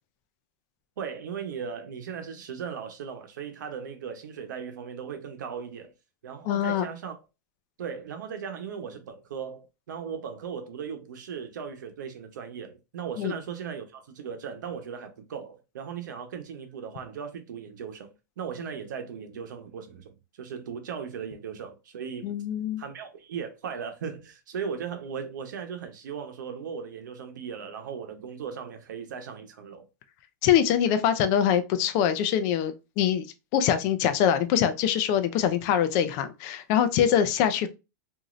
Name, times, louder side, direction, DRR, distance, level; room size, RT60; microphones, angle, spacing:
voice 1, 1.0-5.9 6.2-7.1 7.8-22.3 22.8-29.8, right 7 dB, 80° right, 0.8 m, -37 dB
voice 2, 6.5-6.9 13.2-13.3 22.2-22.8 30.4-33.3 33.5-37.7, left 9 dB, 35° left, 0.4 m, -24 dB
3.0 x 2.6 x 2.5 m
supercardioid pair, 160°, 10 cm